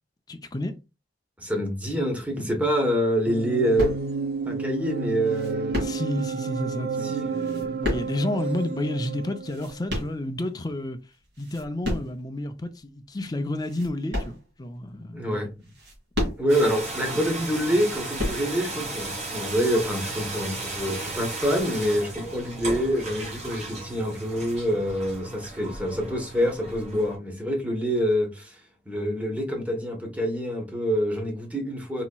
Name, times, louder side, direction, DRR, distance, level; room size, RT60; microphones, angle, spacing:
voice 1, 0.3-0.7 5.8-11.0 11.4-15.5, left 1 dB, 20° left, 0.4 m, -31 dB
voice 2, 1.4-3.9 4.4-5.9 7.0-7.3 15.1-15.5 16.4-28.6 28.9-32.0, equal, 10° right, 0.9 m, -26 dB
sound 1, 3.3-9.8, right 5 dB, 55° right, 0.5 m, -31 dB
sound 2, 3.8-4.4 5.2-6.3 7.3-8.5 9.2-10.6 11.1-12.2 12.8-12.9 13.5-14.9 15.6-16.8 17.7-18.8 19.6-19.9, left 1 dB, 75° right, 2.0 m, -32 dB
sound 3, 16.5-27.2, right 2 dB, 40° right, 1.4 m, -35 dB
4.1 x 2.8 x 2.2 m
head